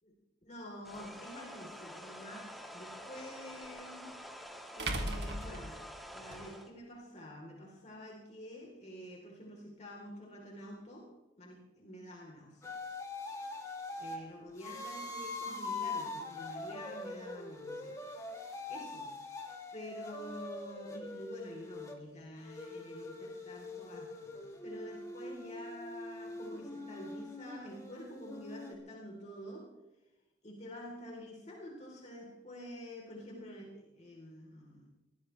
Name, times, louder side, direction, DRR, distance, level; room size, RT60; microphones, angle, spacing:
voice 1, 0.4-4.2 4.7-11.1 11.4-12.8 14.0-18.0 18.7-19.1 19.7-29.7 30.4-34.9, equal, 40° left, -2 dB, 3.7 m, -48 dB
sound 1, 0.8-6.7, equal, ahead, 1.7 m, -48 dB
sound 2, 1.0-1.1 3.6-3.7 4.8-6.4, right 1 dB, 70° right, 2.4 m, -37 dB
sound 3, 12.6-14.2 14.6-22.0 22.4-28.7, left 2 dB, 20° left, 2.6 m, -43 dB
23.0 x 17.0 x 3.3 m, 1.0 s
head